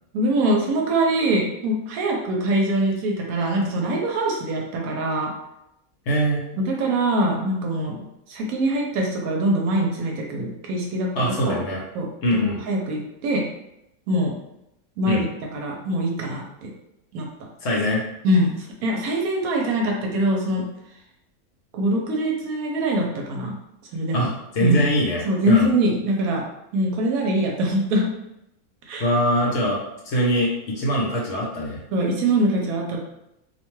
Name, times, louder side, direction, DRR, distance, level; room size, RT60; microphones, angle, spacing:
voice 1, 0.1-5.3 6.6-8.0 8.3-11.1 11.4-11.5 11.9-12.1 12.7-13.5 14.1-14.4 15.0-15.2 15.5-16.7 17.1-17.3 18.2-20.7 21.7-23.5 23.9-24.3 24.6-24.8 25.2-26.4 26.7-28.1 28.9-29.1 31.9-33.0, right 1 dB, 80° right, 0 dB, 1.0 m, -23 dB
voice 2, 6.1-6.5 11.2-11.8 12.2-12.6 15.1-15.2 17.6-18.0 24.1-25.7 29.0-31.8, equal, 60° left, -3 dB, 0.9 m, -23 dB
2.5 x 2.2 x 3.0 m, 0.84 s
omnidirectional pair, 1.5 m